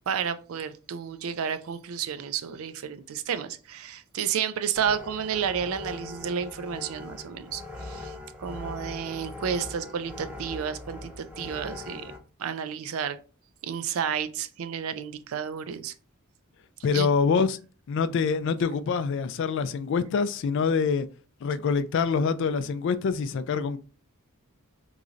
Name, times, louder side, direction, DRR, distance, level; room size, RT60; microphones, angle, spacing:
voice 1, 0.0-12.1 12.4-13.2 13.6-15.9 16.9-17.1, right 7 dB, 70° right, 0.4 m, -31 dB
sound 1, 4.8-12.2, left 2 dB, 5° right, 0.6 m, -41 dB
voice 2, 16.8-17.6 17.9-21.1 21.4-23.8, left 5 dB, 55° left, 0.3 m, -25 dB
3.8 x 3.1 x 2.5 m
head